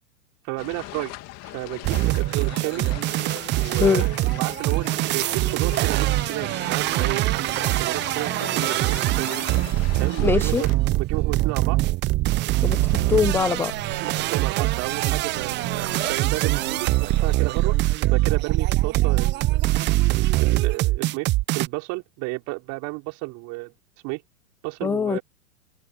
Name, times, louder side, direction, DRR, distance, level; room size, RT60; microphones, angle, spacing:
voice 1, 0.4-1.1 1.4-2.9 3.6-9.5 10.0-10.7 11.0-11.8 14.0-19.9 20.4-21.3 21.5-23.7 24.0-24.2 24.6-25.2, right 26 dB, 40° right, 5.4 m, -32 dB
sound 1, 0.6-10.8, left 18 dB, 35° left, 2.8 m, -40 dB
sound 2, 1.8-21.7, right 18 dB, 25° right, 0.8 m, -23 dB
voice 2, 10.2-10.6 12.6-13.7 24.8-25.2, left 6 dB, 5° left, 0.4 m, -22 dB
sound 3, 12.5-17.6, right 8 dB, 80° right, 7.8 m, -37 dB
open air
hypercardioid pair, 115°, 44 cm